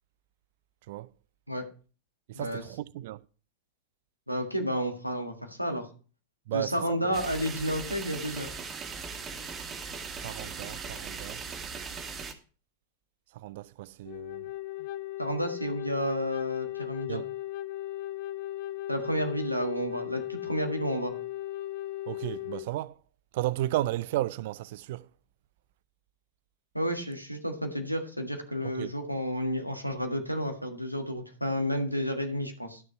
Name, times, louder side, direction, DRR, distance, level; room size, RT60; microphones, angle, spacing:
voice 1, 2.3-3.2 6.5-7.2 10.2-11.4 13.3-14.5 17.1-17.3 22.1-23.0 23.3-25.1 28.6-28.9, right 15 dB, 50° right, 0.4 m, -34 dB
voice 2, 4.3-5.9 6.5-8.5 15.2-17.2 18.9-21.1 26.7-32.8, equal, 90° left, 1.7 m, -31 dB
sound 1, 7.1-12.3, right 5 dB, 25° right, 1.4 m, -39 dB
Wind instrument woodwind instrument, 14.0-22.7, left 14 dB, 50° left, 0.5 m, -37 dB
12.0 x 6.6 x 4.5 m
figure-of-eight pair, 90°, 0 cm